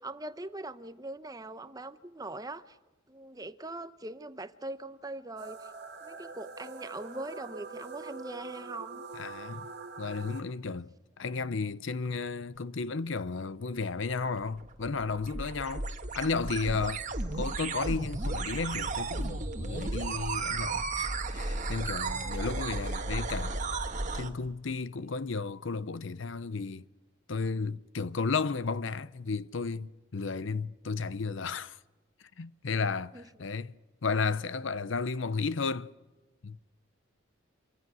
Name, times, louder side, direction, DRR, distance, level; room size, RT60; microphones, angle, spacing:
voice 1, 0.0-2.8 3.1-5.7 6.0-9.0 22.1-22.6 33.1-33.2, right 2 dB, 20° right, 0.8 m, -42 dB
sound 1, 5.4-10.4, right 4 dB, 50° right, 2.2 m, -44 dB
voice 2, 9.1-9.7 10.0-15.9 16.1-17.0 17.3-23.6 24.1-26.9 27.3-31.8 32.4-33.7 34.0-35.9 36.4-36.6, left 4 dB, 65° left, 0.7 m, -33 dB
sound 2, 14.4-24.3, right 3 dB, 35° right, 1.6 m, -34 dB
27.0 x 24.5 x 6.2 m
head